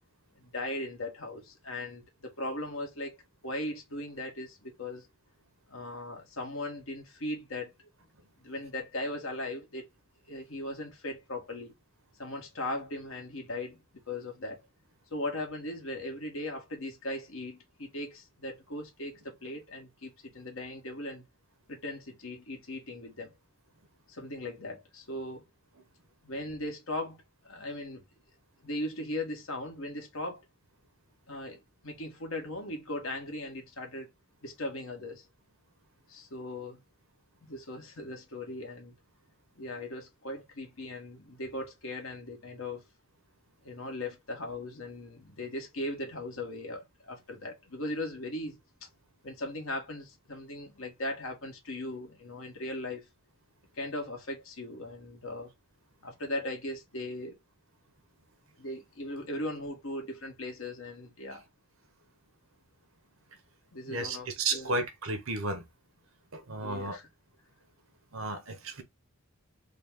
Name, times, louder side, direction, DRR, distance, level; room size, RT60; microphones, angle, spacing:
voice 1, 0.3-3.2 3.4-5.1 5.7-7.9 8.4-9.9 10.3-11.7 12.2-13.8 14.1-14.6 15.1-21.2 21.7-23.3 24.1-25.4 26.2-28.0 28.6-30.4 31.3-34.1 34.4-35.3 36.1-36.8 37.4-38.9 39.5-42.8 43.6-48.9 49.2-53.1 53.7-55.5 56.0-57.4 58.6-61.4 63.7-64.8 66.6-67.0, left 1 dB, 80° left, 1.5 m, -38 dB
voice 2, 63.9-65.7 66.3-67.0 68.1-68.8, right 3 dB, 75° right, 1.0 m, -33 dB
3.9 x 2.4 x 3.6 m
head